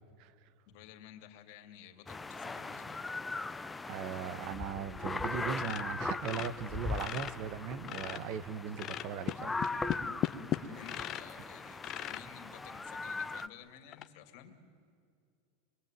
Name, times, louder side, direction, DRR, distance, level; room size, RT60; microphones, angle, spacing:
voice 1, 0.7-3.0 10.6-14.6, left 9 dB, 55° left, 5 dB, 2.8 m, -53 dB
sound 1, 2.1-13.5, left 3 dB, 10° left, 0.6 m, -40 dB
voice 2, 3.8-9.5 10.5-10.8, right 8 dB, 50° right, 15 dB, 1.0 m, -39 dB
sound 2, 5.6-7.4 7.7-8.4 8.8-11.3 11.8-12.3 12.9-13.0 13.4-13.5 13.9-14.1, left 12 dB, 35° left, 1.0 m, -37 dB
26.0 x 22.0 x 9.2 m, 2.3 s
supercardioid pair, 140°, 0 cm